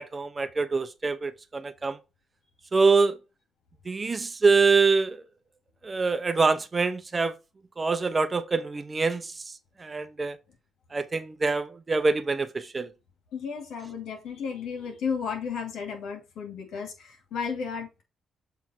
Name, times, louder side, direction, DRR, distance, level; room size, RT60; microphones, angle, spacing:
voice 1, 0.0-2.0 2.7-3.2 3.9-5.2 5.8-7.3 7.8-9.3 9.8-10.4 10.9-12.9, right 4 dB, 30° right, 0.8 m, -25 dB
voice 2, 13.3-18.0, left 6 dB, 75° left, 2.6 m, -33 dB
7.4 x 3.5 x 4.5 m
cardioid pair, 80°, 0 cm